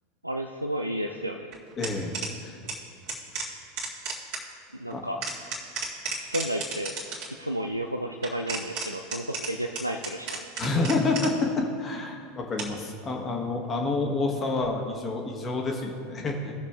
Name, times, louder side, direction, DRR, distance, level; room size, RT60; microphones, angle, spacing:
voice 1, 0.2-1.5 4.8-5.2 6.1-7.0 7.4-10.5, right 1 dB, 90° right, 4 dB, 0.3 m, -32 dB
sound 1, 1.5-2.3 2.6-2.8 3.0-4.4 4.9-7.3 8.2-11.5 12.6-13.0 14.6-14.7, right 3 dB, 50° right, 2.1 m, -34 dB
voice 2, 1.8-2.6 4.9-5.0 10.6-16.5, left 3 dB, 25° left, 1 dB, 1.2 m, -28 dB
18.0 x 6.6 x 2.3 m, 2.3 s
figure-of-eight pair, 80°, 0 cm